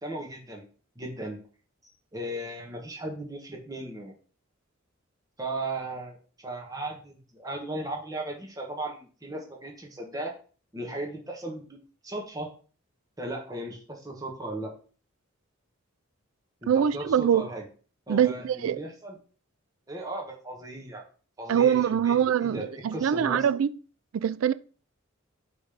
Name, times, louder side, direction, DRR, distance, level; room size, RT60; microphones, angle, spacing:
voice 1, 0.0-0.6 0.9-1.4 1.8-4.1 5.4-10.3 10.7-11.8 12.0-12.5 13.2-14.7 16.6-17.6 18.1-19.2 19.9-21.0 21.4-21.8 22.0-23.4, right 1 dB, 20° right, 1.4 m, -36 dB
voice 2, 16.7-17.5 18.1-18.8 21.5-23.7 24.1-24.5, right 8 dB, 85° right, 0.3 m, -24 dB
5.2 x 4.0 x 5.1 m
head